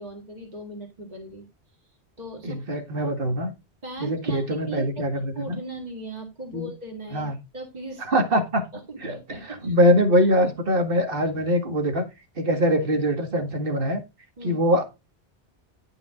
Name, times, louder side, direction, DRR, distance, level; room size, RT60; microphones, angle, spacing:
voice 1, 0.0-1.5 2.2-2.6 3.8-5.0 5.3-8.1 8.7-9.7 14.4-14.6, right 2 dB, 40° right, 0 dB, 2.4 m, -38 dB
voice 2, 2.4-3.5 4.0-5.6 6.5-6.7 7.1-7.4 8.1-8.6 9.0-9.1 9.6-12.0 12.4-14.0 14.4-14.8, equal, 60° right, 5 dB, 2.0 m, -23 dB
11.0 x 5.4 x 3.7 m, 0.25 s
omnidirectional pair, 1.1 m